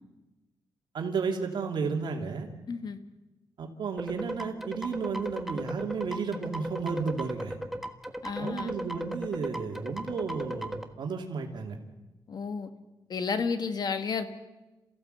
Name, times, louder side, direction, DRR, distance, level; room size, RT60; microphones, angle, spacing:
voice 1, 0.9-2.5 3.6-7.6 8.3-11.8, right 5 dB, 70° right, 2 dB, 2.7 m, -33 dB
voice 2, 2.7-3.0 8.2-8.7 12.3-12.7 13.1-14.3, left 5 dB, 55° left, 9 dB, 1.6 m, -31 dB
sound 1, 4.0-10.8, right 1 dB, ahead, 1.4 m, -37 dB
27.5 x 15.5 x 8.0 m, 1.1 s
wide cardioid pair, 115°, 8 cm